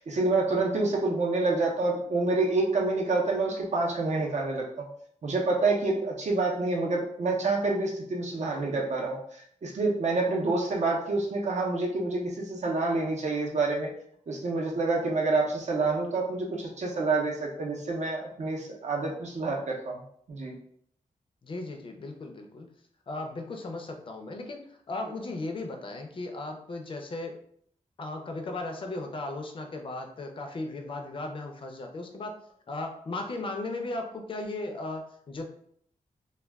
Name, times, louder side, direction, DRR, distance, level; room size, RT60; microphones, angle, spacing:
voice 1, 0.0-4.8 5.2-9.2 9.6-13.9 14.3-20.0 20.3-20.5, right 3 dB, 60° right, -1 dB, 0.7 m, -27 dB
voice 2, 8.3-8.7 21.4-22.7 23.1-27.4 28.0-32.4 32.7-35.5, left 2 dB, 40° left, 3 dB, 0.4 m, -36 dB
2.3 x 2.2 x 3.3 m, 0.65 s
wide cardioid pair, 145°, 14 cm